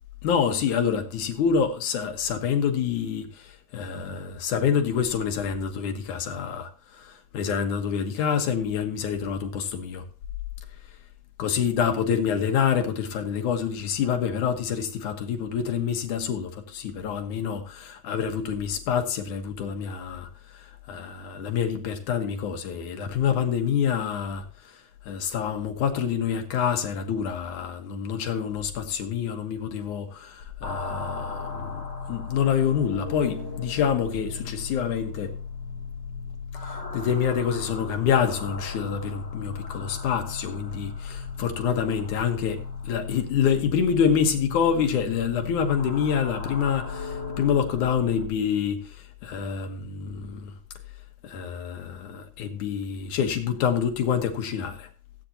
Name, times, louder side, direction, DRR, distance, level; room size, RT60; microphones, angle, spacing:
voice 1, 0.2-6.7 7.0-10.0 11.4-20.3 20.6-24.5 25.1-31.8 32.1-35.3 36.6-40.9 41.4-50.5 51.2-54.9, left 7 dB, 75° left, 2.7 m, -27 dB
sound 1, 30.6-48.2, left 4 dB, 20° left, 4.3 m, -36 dB
17.5 x 8.8 x 2.8 m
omnidirectional pair, 3.6 m